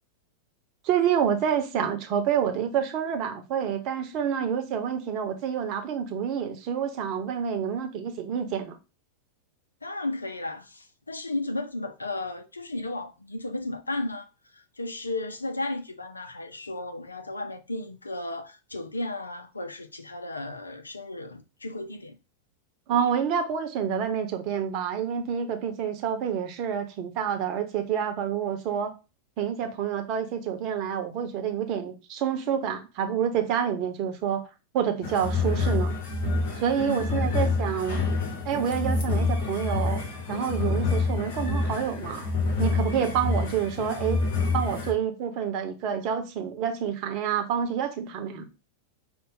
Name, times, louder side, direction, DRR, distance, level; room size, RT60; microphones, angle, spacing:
voice 1, 0.8-8.8 22.9-28.9 29.4-34.5 34.7-36.0 36.6-38.0 38.4-40.0 40.3-42.3 42.6-44.2 44.5-48.5, right 8 dB, 40° right, 0.9 m, -28 dB
voice 2, 9.8-22.2 36.8-37.4, left 2 dB, 80° left, 0.5 m, -34 dB
sound 1, 35.0-44.9, left 3 dB, 55° left, 1.3 m, -27 dB
5.4 x 2.3 x 3.8 m
figure-of-eight pair, 90°, 0 cm